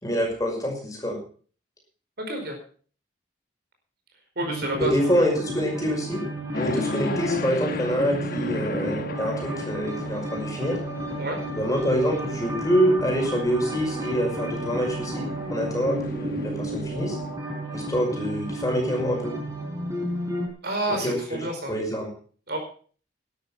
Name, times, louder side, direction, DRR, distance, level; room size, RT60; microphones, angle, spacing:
voice 1, 0.0-1.2 4.8-6.2 6.5-10.8 11.5-17.2 17.7-19.3 20.9-21.4 21.7-22.1, equal, 20° left, 1 dB, 5.5 m, -26 dB
voice 2, 2.2-2.6 4.3-5.1 11.2-11.4 20.6-21.7 22.5-22.6, right 1 dB, 60° right, 3 dB, 5.0 m, -29 dB
sound 1, 4.4-20.5, right 1 dB, 15° right, 3.8 m, -32 dB
sound 2, 6.5-17.4, left 2 dB, 50° left, 1.3 m, -37 dB
12.5 x 12.0 x 5.7 m, 0.42 s
head